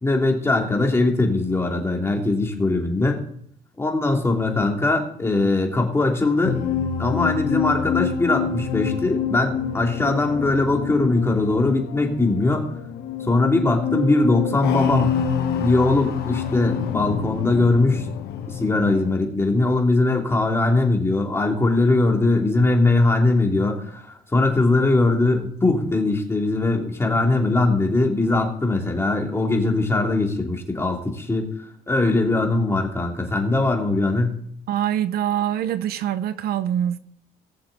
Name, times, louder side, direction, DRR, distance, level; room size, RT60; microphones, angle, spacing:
voice 1, 0.0-3.2 3.8-6.6 7.0-12.6 13.3-15.1 15.5-18.1 18.5-34.4, left 2 dB, 15° left, 2.9 m, -21 dB
sound 1, 6.4-19.2, left 7 dB, 70° left, 1.4 m, -27 dB
voice 2, 34.7-37.0, right 10 dB, 65° right, 0.7 m, -24 dB
19.5 x 7.0 x 4.1 m
cardioid pair, 110°, 17 cm